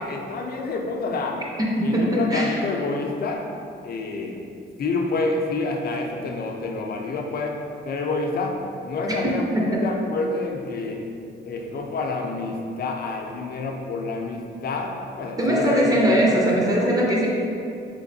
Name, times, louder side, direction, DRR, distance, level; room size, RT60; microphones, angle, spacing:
voice 1, 0.0-1.4 1.8-3.4 3.8-4.4 4.8-7.6 7.9-11.0 11.5-15.9 16.3-16.9, left 3 dB, 55° left, 2 dB, 0.5 m, -28 dB
voice 2, 1.8-2.6 9.2-9.3 9.7-9.8 15.4-17.3, equal, 20° right, -3 dB, 0.5 m, -20 dB
3.5 x 3.2 x 2.6 m, 2.5 s
cardioid pair, 105°, 19 cm